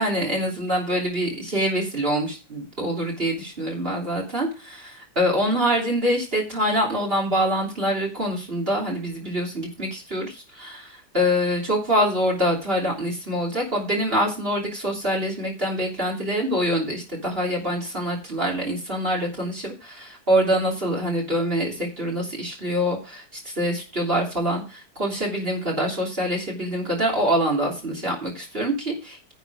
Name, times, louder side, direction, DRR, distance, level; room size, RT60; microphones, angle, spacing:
voice 1, 0.0-29.3, equal, 35° right, 0 dB, 3.4 m, -25 dB
10.5 x 7.2 x 4.8 m, 0.32 s
omnidirectional pair, 1.8 m